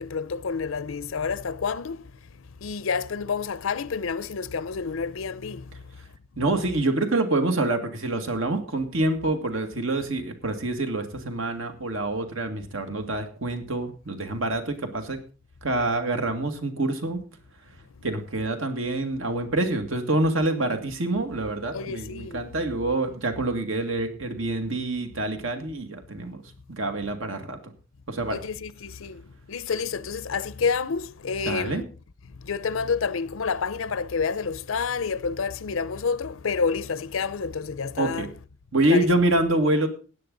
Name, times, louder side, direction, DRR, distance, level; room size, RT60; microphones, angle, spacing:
voice 1, 0.0-2.0 2.6-5.6 21.7-22.5 28.3-29.2 29.5-31.8 32.4-38.3 38.9-39.1, left 5 dB, 85° left, 0.6 m, -29 dB
voice 2, 6.4-15.2 15.6-17.2 18.0-26.4 26.7-27.6 28.1-28.4 31.5-31.8 38.0-38.3 38.7-39.9, right 2 dB, 75° right, 2.0 m, -26 dB
16.0 x 9.9 x 3.9 m
head